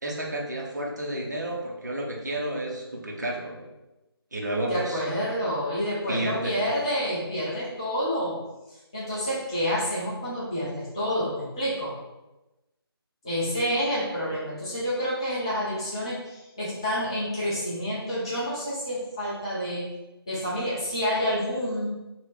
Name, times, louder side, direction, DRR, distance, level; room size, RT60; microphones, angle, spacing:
voice 1, 0.0-3.7 4.3-5.0 6.1-6.6, right 1 dB, 45° right, 0 dB, 0.7 m, -31 dB
voice 2, 4.7-8.4 8.9-12.0 13.2-19.9 20.3-22.0, equal, 10° left, -10 dB, 0.6 m, -28 dB
2.8 x 2.8 x 3.1 m, 1.0 s
figure-of-eight pair, 155°, 13 cm